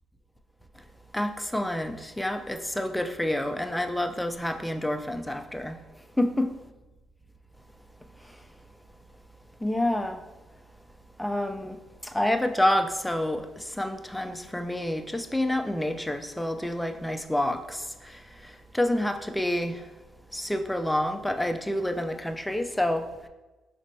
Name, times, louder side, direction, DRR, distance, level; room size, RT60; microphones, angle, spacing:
voice 1, 1.1-5.8 6.2-6.5 9.6-10.2 11.2-11.8 12.0-19.8 20.3-23.1, left 1 dB, 5° left, 7 dB, 0.4 m, -28 dB
5.1 x 3.2 x 2.7 m, 1.1 s
cardioid pair, 90°, 0 cm